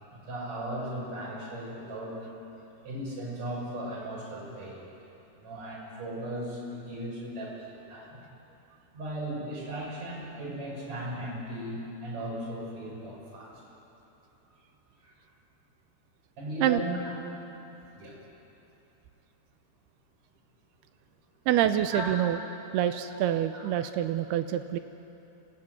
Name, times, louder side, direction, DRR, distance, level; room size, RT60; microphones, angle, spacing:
voice 1, 0.1-2.2 2.8-4.8 5.4-8.2 8.9-13.6 14.5-14.6 15.0-15.1 16.4-17.1 17.9-18.2 21.9-22.2 23.1-23.2 23.5-23.7, right 1 dB, 35° right, -4 dB, 7.5 m, -37 dB
voice 2, 21.5-22.4 22.7-24.8, right 11 dB, 80° right, 9 dB, 2.4 m, -26 dB
26.0 x 18.5 x 9.5 m, 2.9 s
omnidirectional pair, 5.2 m